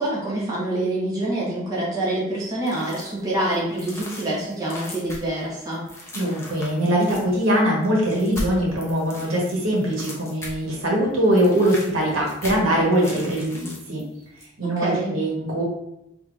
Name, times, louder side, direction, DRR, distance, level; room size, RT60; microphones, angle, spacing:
voice 1, 0.0-5.8 14.6-15.1, right 1 dB, 20° right, -7 dB, 1.1 m, -26 dB
sound 1, 2.7-3.2 3.5-10.8 11.1-14.0 14.4-14.5, left 1 dB, 15° left, 0.6 m, -38 dB
voice 2, 6.1-14.0 14.6-15.6, right 1 dB, 80° right, -3 dB, 1.3 m, -22 dB
5.0 x 2.8 x 2.5 m, 0.83 s
head